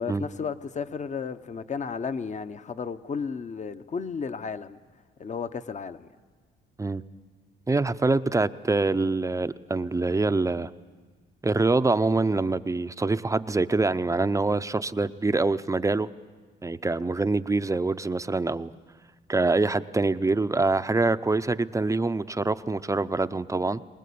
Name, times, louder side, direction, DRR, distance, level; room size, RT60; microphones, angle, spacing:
voice 1, 0.0-4.8 5.2-6.1, left 5 dB, 35° left, 0.9 m, -33 dB
voice 2, 7.7-10.7 11.4-16.1 16.6-18.7 19.3-23.8, right 3 dB, 15° right, 0.6 m, -25 dB
23.5 x 20.0 x 8.5 m
cardioid pair, 90°, 20 cm